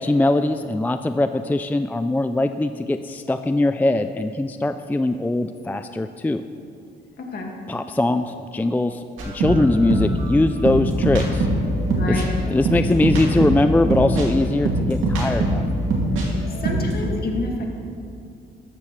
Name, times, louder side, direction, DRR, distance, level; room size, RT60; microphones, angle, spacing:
voice 1, 0.0-6.4 7.7-11.5 12.1-12.2 12.5-15.6, left 2 dB, 10° left, 9 dB, 0.3 m, -21 dB
voice 2, 7.2-7.5 11.9-12.3 16.6-17.6, left 2 dB, 50° left, 0 dB, 2.1 m, -29 dB
sound 1, 9.2-16.3 16.5-17.1, right 1 dB, 80° right, 2.6 m, -22 dB
13.5 x 13.0 x 3.3 m, 2.5 s
cardioid pair, 90°, 20 cm